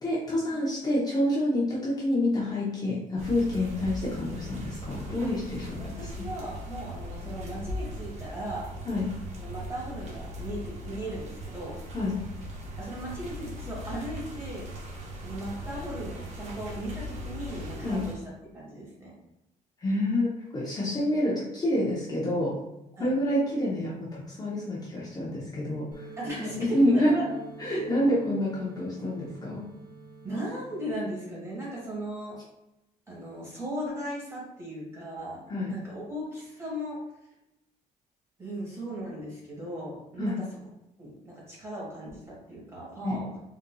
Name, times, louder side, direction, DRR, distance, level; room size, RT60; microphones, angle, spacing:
voice 1, 0.0-5.8 8.9-9.1 11.9-12.2 17.8-18.0 19.8-22.5 23.0-26.1 26.4-27.1 27.6-29.6 35.5-35.7 40.2-40.4 43.0-43.3, left 1 dB, 25° left, -6 dB, 0.7 m, -28 dB
sound 1, 3.2-18.1, equal, 45° right, 0.7 m, -39 dB
voice 2, 5.8-8.7 9.4-11.8 12.7-14.7 15.2-18.2 18.5-19.2 20.8-20.9 23.0-23.1 26.2-27.3 27.7-27.9 30.2-32.4 33.1-35.4 35.7-37.0 38.4-40.4 41.0-43.4, right 1 dB, 20° right, -5 dB, 1.3 m, -37 dB
sound 2, 25.9-30.9, right 4 dB, 65° right, 1.1 m, -47 dB
3.9 x 2.6 x 2.2 m, 0.90 s
cardioid pair, 135°, 15 cm